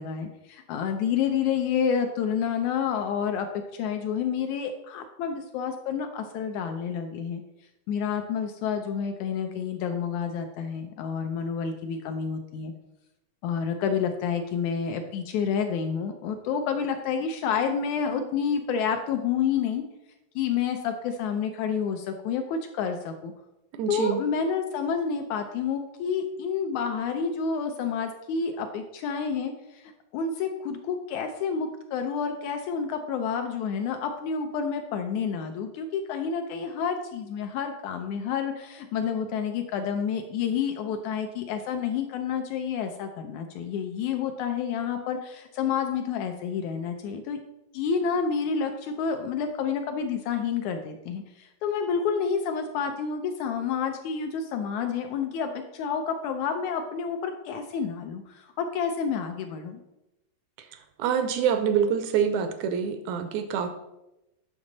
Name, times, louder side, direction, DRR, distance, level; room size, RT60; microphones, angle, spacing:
voice 1, 0.0-3.5 3.7-7.4 7.9-12.7 13.4-19.8 20.4-23.3 23.9-47.4 47.7-59.8, left 6 dB, 80° left, 6 dB, 1.8 m, -29 dB
voice 2, 23.7-24.2 61.0-63.7, right 8 dB, 80° right, 8 dB, 1.7 m, -25 dB
8.7 x 6.3 x 4.0 m, 0.91 s
omnidirectional pair, 3.9 m